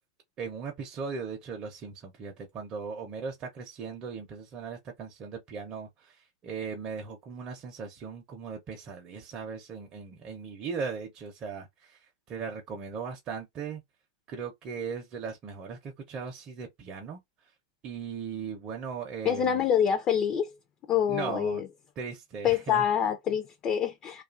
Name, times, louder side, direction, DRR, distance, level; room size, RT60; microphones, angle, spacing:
voice 1, 0.4-12.0 12.3-13.8 14.3-17.2 17.8-19.6 21.1-21.6 22.0-22.9, right 5 dB, 30° right, 0.7 m, -38 dB
voice 2, 19.2-20.6 20.9-21.7 22.4-24.2, left 8 dB, 30° left, 0.5 m, -26 dB
2.6 x 2.4 x 2.4 m
hypercardioid pair, 125°, 3 cm